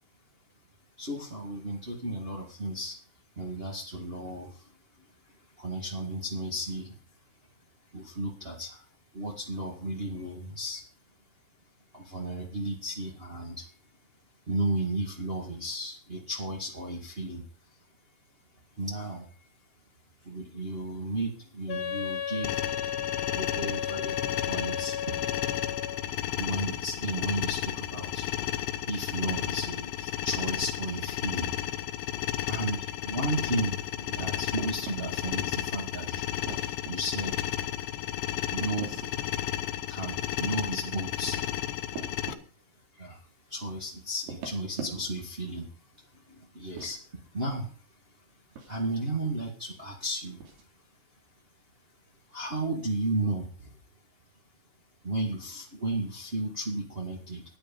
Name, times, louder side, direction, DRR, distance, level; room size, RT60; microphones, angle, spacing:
voice 1, 1.0-3.0 3.3-5.1 5.6-6.9 7.9-8.8 9.1-10.8 11.9-13.7 14.5-17.4 18.8-19.3 20.2-22.7 23.3-25.1 26.4-28.3 28.8-31.5 32.5-36.2 36.9-37.5 38.5-39.1 39.9-41.4 42.9-45.7 46.0-47.8 48.7-50.4 52.3-53.7 55.0-57.4, right 1 dB, 45° right, -2 dB, 0.7 m, -34 dB
Wind instrument woodwind instrument, 21.7-26.1, left 8 dB, 70° left, 2.8 m, -34 dB
sound 1, 22.4-42.3, left 12 dB, 85° left, 3.0 m, -33 dB
sound 2, 34.2-35.0 36.4-36.9 38.6-39.2 41.1-42.4 44.2-45.3 46.6-47.0 48.6-48.8 50.4-50.7, right 6 dB, 70° right, 4.9 m, -41 dB
12.5 x 10.0 x 5.4 m, 0.40 s
omnidirectional pair, 4.7 m